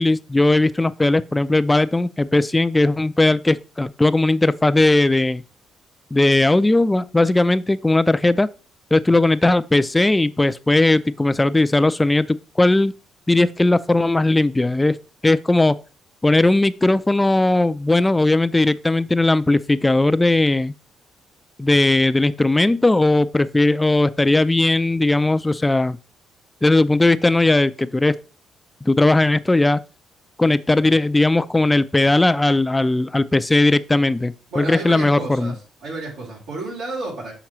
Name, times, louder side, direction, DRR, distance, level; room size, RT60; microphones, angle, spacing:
voice 1, 0.0-5.4 6.1-8.5 8.9-12.9 13.3-15.0 15.2-15.8 16.2-20.7 21.6-26.0 26.6-28.2 28.8-29.8 30.4-35.5, left 2 dB, 15° left, 0.3 m, -18 dB
voice 2, 34.5-37.3, right 2 dB, 90° right, 2.9 m, -31 dB
6.4 x 5.9 x 3.0 m
cardioid pair, 90°, 0 cm